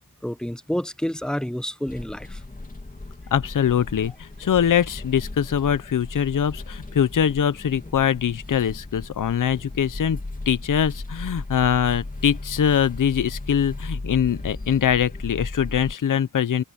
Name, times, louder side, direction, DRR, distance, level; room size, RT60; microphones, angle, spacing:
voice 1, 0.2-2.4, equal, ahead, 0.8 m, -29 dB
sound 1, 1.9-15.9, left 2 dB, 20° left, 2.7 m, -36 dB
voice 2, 3.3-10.2 10.5-16.6, left 8 dB, 55° left, 0.8 m, -23 dB
open air
wide cardioid pair, 95°, 37 cm